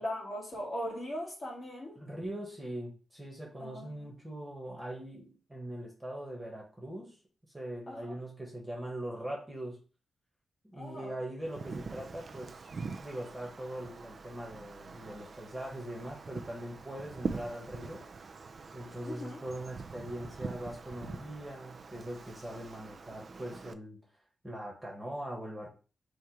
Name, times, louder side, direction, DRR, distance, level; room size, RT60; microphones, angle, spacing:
voice 1, 0.0-2.0 3.6-4.1 7.9-8.2 10.8-11.2 19.0-19.4, equal, 35° left, 2.1 m, -39 dB
voice 2, 2.0-7.2 7.5-9.8 10.6-12.6 13.0-18.1 18.7-24.0 24.4-25.7, right 1 dB, 15° right, 1.3 m, -41 dB
Wind, 11.4-23.7, right 4 dB, 50° right, 0.4 m, -44 dB
4.4 x 2.5 x 4.6 m
wide cardioid pair, 105°, 0 cm